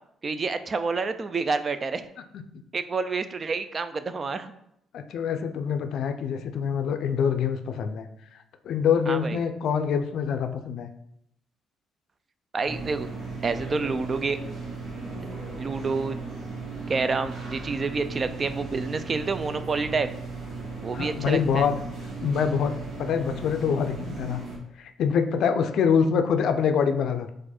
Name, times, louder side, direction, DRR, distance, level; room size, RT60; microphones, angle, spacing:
voice 1, 0.2-2.0 2.7-4.5 9.1-9.4 12.5-13.1 13.4-14.4 15.5-16.2 16.9-20.1 20.8-21.7, right 4 dB, 40° right, 11 dB, 0.3 m, -28 dB
voice 2, 4.9-8.0 8.6-10.9 20.9-21.7 22.2-24.4 24.8-27.3, left 7 dB, 75° left, 7 dB, 0.4 m, -25 dB
sound 1, 12.6-24.6, right 3 dB, 75° right, 1.3 m, -36 dB
4.4 x 2.5 x 4.2 m, 0.76 s
cardioid pair, 90°, 0 cm